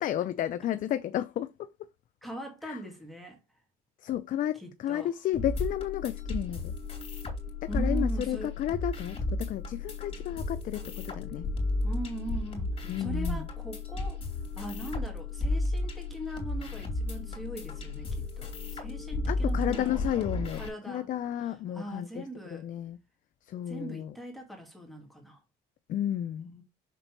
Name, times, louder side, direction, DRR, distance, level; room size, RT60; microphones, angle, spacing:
voice 1, 0.0-1.7 2.6-2.8 4.0-6.7 7.6-11.5 12.9-13.5 19.3-23.0 23.4-24.1 25.9-26.5, left 11 dB, 50° left, 0.5 m, -32 dB
voice 2, 2.2-3.4 4.6-5.1 7.7-8.5 11.8-12.7 13.0-14.2 14.6-19.9 20.5-21.1 21.4-22.7 23.7-25.4 26.4-26.6, right 1 dB, ahead, 2.0 m, -41 dB
sound 1, 5.3-20.7, left 2 dB, 35° left, 2.9 m, -33 dB
5.9 x 3.9 x 4.5 m
cardioid pair, 110°, 17 cm